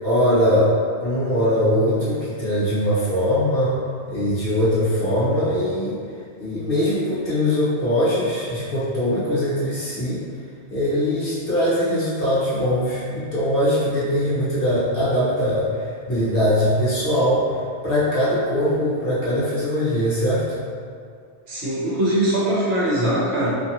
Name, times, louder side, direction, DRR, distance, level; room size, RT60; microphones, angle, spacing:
voice 1, 0.0-0.7 1.0-3.7 4.1-6.0 6.4-10.2 10.7-15.7 16.1-17.4 17.8-20.4, equal, 55° left, -10 dB, 0.9 m, -21 dB
voice 2, 21.5-23.5, right 1 dB, 60° right, -9 dB, 0.9 m, -21 dB
2.6 x 2.4 x 2.7 m, 2.3 s
omnidirectional pair, 1.3 m